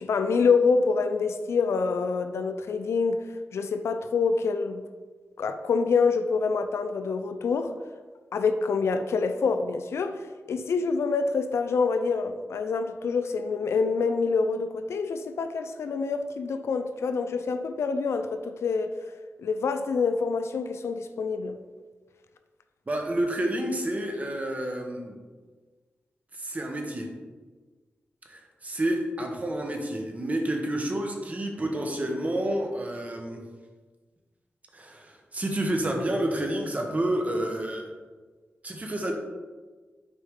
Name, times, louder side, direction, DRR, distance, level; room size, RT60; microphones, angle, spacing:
voice 1, 0.0-3.2 3.5-4.8 5.4-7.7 8.3-19.0 19.4-21.6, left 4 dB, 90° left, 0.4 m, -26 dB
voice 2, 22.9-25.2 26.3-27.1 28.3-33.5 34.7-37.9 38.6-39.1, right 1 dB, 35° right, 1.0 m, -29 dB
6.3 x 4.6 x 3.6 m
wide cardioid pair, 90°, 4 cm